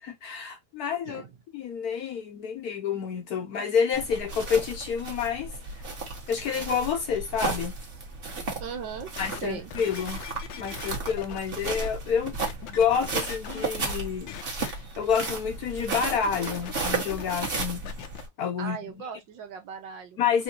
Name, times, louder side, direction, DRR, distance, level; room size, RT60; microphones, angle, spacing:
voice 1, 0.0-1.2 1.5-5.6 6.3-7.7 9.2-10.2 10.5-12.3 12.7-17.9 18.4-18.8 20.2-20.4, left 7 dB, 65° left, 1.0 m, -28 dB
sound 1, 3.9-18.3, right 3 dB, 35° right, 1.2 m, -34 dB
voice 2, 8.6-9.1 9.4-9.7 18.6-20.2, right 7 dB, 75° right, 1.6 m, -38 dB
sound 2, 9.2-11.9 12.5-14.0 14.3-14.7 15.9-18.2 18.9-19.0, left 8 dB, 90° left, 1.4 m, -40 dB
4.3 x 2.7 x 2.8 m
omnidirectional pair, 2.0 m